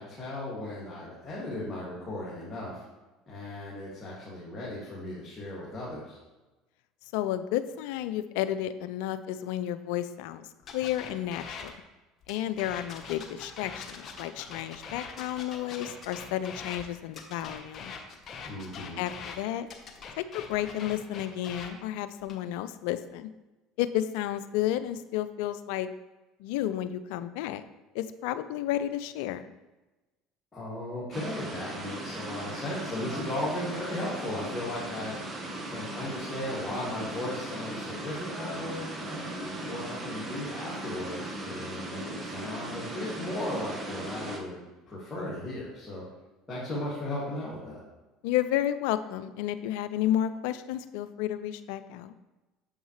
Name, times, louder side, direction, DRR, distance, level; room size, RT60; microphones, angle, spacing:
voice 1, 0.0-2.8 3.3-6.2 18.4-19.0 30.5-35.2 35.6-44.6 44.9-46.0 46.5-47.8, left 1 dB, 25° left, -8 dB, 2.2 m, -36 dB
voice 2, 7.1-10.5 10.7-11.8 12.3-17.9 19.0-19.7 20.2-23.3 23.8-25.9 26.4-27.6 27.9-29.5 48.2-52.1, left 12 dB, 70° left, 12 dB, 0.3 m, -31 dB
sound 1, 10.7-11.7 12.2-16.8 17.1-19.4 19.7-21.7 22.2-22.5, left 5 dB, 40° left, 1.0 m, -42 dB
sound 2, 31.1-44.4, right 1 dB, 30° right, 1.2 m, -38 dB
7.1 x 5.4 x 3.2 m, 1.1 s
hypercardioid pair, 70°, 0 cm